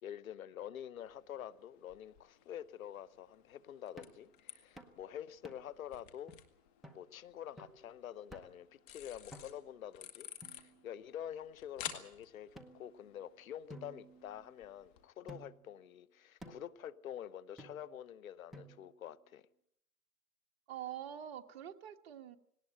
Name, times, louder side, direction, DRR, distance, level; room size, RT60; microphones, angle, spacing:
voice 1, 0.0-6.4 6.9-19.4, left 10 dB, 60° left, 1.0 m, -47 dB
sound 1, 1.0-15.1, left 11 dB, 35° left, 2.0 m, -54 dB
sound 2, 4.0-4.2 4.8-5.0 5.4-5.8 6.3-6.4 6.8-7.0 7.6-7.8 8.3-8.7 9.3-9.8 10.4-11.1 11.9-12.0 12.5-13.2 13.7-14.7 15.3-15.7 16.4-16.8 17.6-18.0 18.5-19.0, right 1 dB, ahead, 0.9 m, -54 dB
voice 2, 20.7-22.4, right 10 dB, 40° right, 1.4 m, -45 dB
18.5 x 18.5 x 8.7 m
hypercardioid pair, 145°, 45 cm